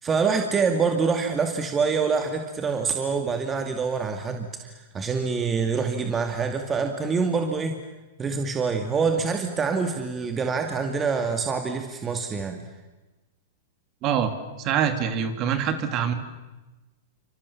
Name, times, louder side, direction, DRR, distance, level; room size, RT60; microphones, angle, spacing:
voice 1, 0.0-7.8 8.2-12.6, right 5 dB, 20° right, 5 dB, 2.5 m, -25 dB
voice 2, 14.0-14.3 14.6-16.1, right 8 dB, 40° right, 8 dB, 3.0 m, -24 dB
29.5 x 26.5 x 7.3 m, 1.1 s
hypercardioid pair, 130°, 0 cm